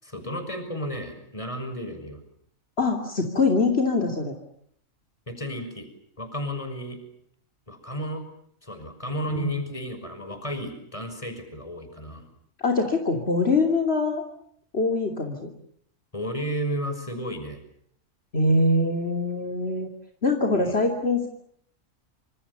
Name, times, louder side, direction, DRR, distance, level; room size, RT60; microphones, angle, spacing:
voice 1, 0.0-2.2 5.3-5.9 6.2-7.0 7.7-8.2 8.6-12.2 16.1-17.6 20.5-20.8, equal, 25° left, 7 dB, 6.4 m, -33 dB
voice 2, 2.8-4.3 9.3-9.5 12.6-14.2 14.7-15.5 18.3-19.9 20.2-21.3, left 2 dB, 50° left, 2 dB, 3.4 m, -23 dB
28.0 x 26.5 x 7.0 m, 0.68 s
omnidirectional pair, 1.4 m